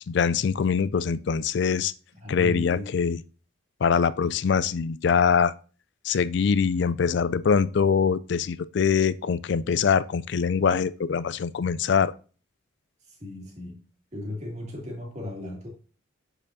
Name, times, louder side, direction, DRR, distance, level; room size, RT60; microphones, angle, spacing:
voice 1, 0.1-1.9 2.3-3.2 3.8-5.5 6.0-12.1, left 6 dB, 60° left, 0.3 m, -23 dB
voice 2, 2.2-2.9 13.1-13.8 14.1-15.7, left 1 dB, 35° right, 2.2 m, -36 dB
7.4 x 6.9 x 2.7 m
head